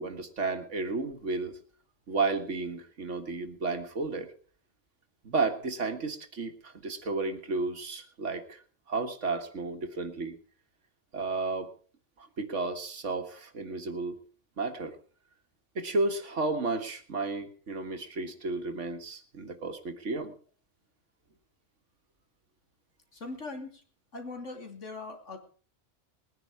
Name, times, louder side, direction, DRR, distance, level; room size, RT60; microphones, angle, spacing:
voice 1, 0.0-1.6 2.1-4.3 5.2-8.6 8.9-10.4 11.1-11.7 12.2-14.2 14.6-15.0 15.8-20.3, right 3 dB, 85° right, 7 dB, 2.0 m, -32 dB
voice 2, 23.1-23.8 24.1-25.4, left 3 dB, 80° left, 3 dB, 3.3 m, -40 dB
20.5 x 10.0 x 4.8 m, 0.42 s
omnidirectional pair, 1.2 m